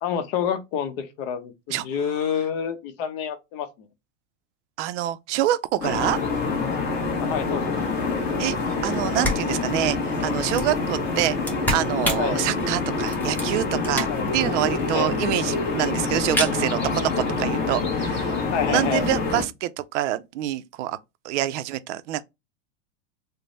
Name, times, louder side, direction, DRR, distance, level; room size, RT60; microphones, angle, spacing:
voice 1, 0.0-3.7 7.2-7.7 12.2-12.4 14.1-14.3 14.9-15.1 18.5-19.1, left 8 dB, 55° left, 0.8 m, -28 dB
voice 2, 4.8-6.2 8.4-8.5 8.8-11.4 11.7-14.1 14.3-21.0 21.2-22.2, right 13 dB, 70° right, 0.5 m, -26 dB
sound 1, 5.8-19.4, left 3 dB, 30° left, 1.1 m, -26 dB
sound 2, 8.9-9.0 9.2-14.4 14.8-14.9 15.1-15.2 15.3-15.8 16.1-16.6, left 1 dB, 5° left, 0.7 m, -30 dB
3.3 x 2.1 x 3.9 m
supercardioid pair, 145°, 37 cm